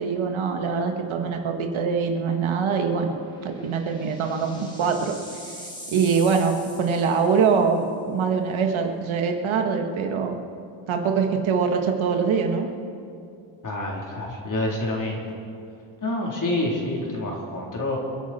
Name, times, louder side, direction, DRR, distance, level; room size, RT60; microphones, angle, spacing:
voice 1, 0.0-3.1 3.4-5.1 5.9-10.4 10.9-12.7, right 5 dB, 80° right, 4 dB, 1.8 m, -23 dB
sound 1, 3.0-7.7, equal, 10° left, 3.0 m, -43 dB
voice 2, 13.6-15.2 16.0-18.0, left 1 dB, 40° left, -2 dB, 3.7 m, -27 dB
28.5 x 11.0 x 4.4 m, 2.5 s
cardioid pair, 115°, 47 cm